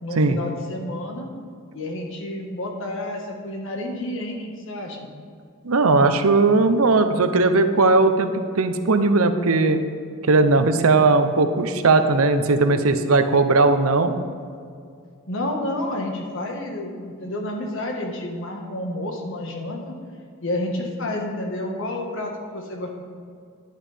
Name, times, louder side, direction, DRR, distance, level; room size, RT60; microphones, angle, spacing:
voice 1, 0.0-1.3 1.7-5.1 15.3-19.9 20.4-22.9, left 1 dB, 65° left, 1 dB, 1.6 m, -30 dB
voice 2, 5.6-9.8 10.2-14.1, right 3 dB, 85° right, 9 dB, 0.8 m, -18 dB
11.0 x 10.0 x 3.5 m, 2.3 s
head